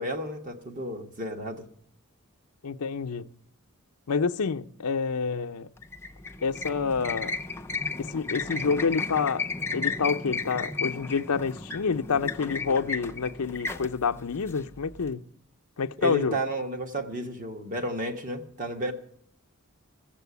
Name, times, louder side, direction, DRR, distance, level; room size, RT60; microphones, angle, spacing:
voice 1, 0.0-1.6 16.0-18.9, right 1 dB, 35° right, 1.4 m, -32 dB
voice 2, 2.6-3.3 4.1-5.7 6.4-7.4 8.0-9.5 9.7-15.2 15.8-16.4, left 5 dB, 80° left, 0.6 m, -28 dB
sound 1, 5.8-15.1, left 4 dB, 10° left, 0.5 m, -34 dB
15.5 x 7.5 x 8.2 m
head